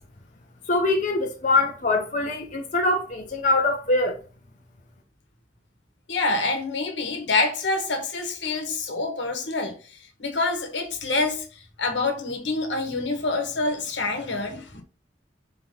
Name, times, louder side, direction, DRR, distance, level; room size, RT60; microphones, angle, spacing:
voice 1, 0.7-4.2, left 2 dB, 45° left, 1.0 m, -23 dB
voice 2, 6.1-9.8 10.2-11.5 11.8-14.8, left 3 dB, 80° left, 1.5 m, -26 dB
4.5 x 3.9 x 5.5 m
head